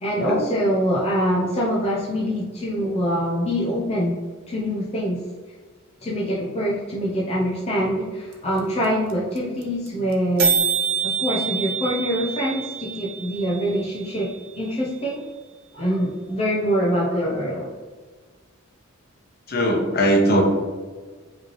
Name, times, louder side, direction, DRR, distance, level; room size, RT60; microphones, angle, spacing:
voice 1, 0.0-4.1 4.5-5.2 6.0-10.6 11.0-14.3 14.6-15.2 15.7-17.7, equal, 30° left, -5 dB, 0.6 m, -24 dB
sound 1, 8.3-8.4 8.6-8.7 8.8-9.1 9.4-9.5 9.6-9.9 10.1-10.2 10.4-14.4, right 6 dB, 70° right, 0.7 m, -26 dB
voice 2, 19.5-20.4, right 1 dB, 50° left, 0 dB, 1.0 m, -19 dB
5.1 x 3.0 x 3.1 m, 1.4 s
head